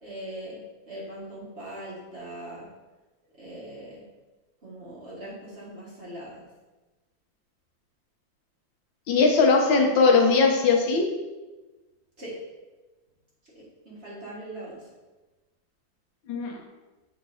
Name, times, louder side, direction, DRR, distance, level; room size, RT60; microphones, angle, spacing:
voice 1, 0.0-0.6 0.9-2.7 3.3-4.0 4.6-6.5 12.2-12.4 13.5-14.9, right 1 dB, 35° right, -7 dB, 1.7 m, -40 dB
voice 2, 9.1-11.0 16.3-16.6, left 4 dB, 75° left, 2 dB, 1.4 m, -20 dB
7.9 x 4.7 x 2.6 m, 1.2 s
omnidirectional pair, 2.2 m